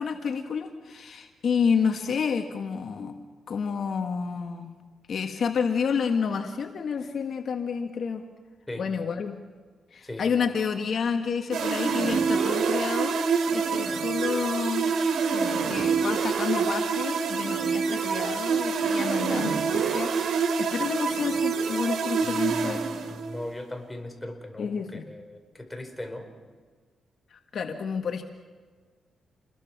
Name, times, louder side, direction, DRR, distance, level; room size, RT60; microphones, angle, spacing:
voice 1, 0.0-4.8 5.1-8.2 8.8-9.4 9.9-13.2 13.5-14.9 15.3-22.8 24.6-25.1 27.3-28.2, left 6 dB, 60° left, 5 dB, 1.6 m, -30 dB
sound 1, 11.5-23.4, right 5 dB, 80° right, 2.5 m, -26 dB
voice 2, 22.2-22.7 23.1-24.7 25.1-26.3, left 1 dB, 10° left, 4 dB, 4.6 m, -38 dB
28.5 x 21.5 x 6.1 m, 1.5 s
cardioid pair, 85°, 0 cm